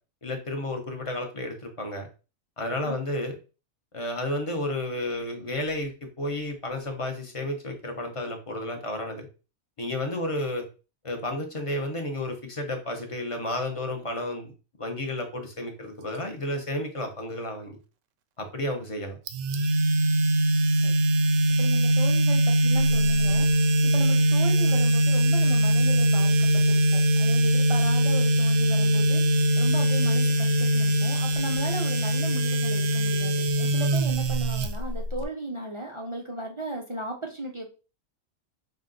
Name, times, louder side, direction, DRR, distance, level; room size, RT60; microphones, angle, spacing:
voice 1, 0.2-2.1 2.6-3.4 3.9-9.3 9.8-10.6 11.0-14.5 14.8-17.8 18.4-19.2, left 1 dB, 30° left, 4 dB, 0.6 m, -32 dB
sound 1, 19.3-35.2, right 1 dB, 70° right, 0.9 m, -22 dB
voice 2, 21.5-23.5 23.8-37.7, right 2 dB, 55° right, 1 dB, 0.3 m, -36 dB
5.4 x 2.2 x 3.7 m, 0.33 s
omnidirectional pair, 1.4 m